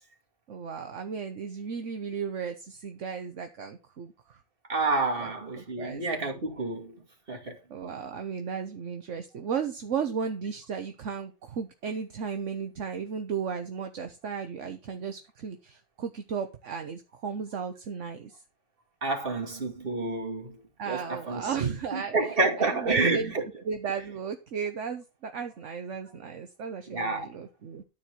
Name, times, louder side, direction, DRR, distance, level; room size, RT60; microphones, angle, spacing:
voice 1, 0.5-4.1 5.2-6.1 7.7-18.3 20.8-22.1 22.6-23.3 23.6-27.8, right 6 dB, 70° right, 1.3 m, -35 dB
voice 2, 4.7-6.9 7.3-7.6 19.0-20.6 20.9-23.4 26.9-27.3, right 3 dB, 45° right, 2.5 m, -29 dB
13.0 x 4.6 x 6.7 m
omnidirectional pair, 1.3 m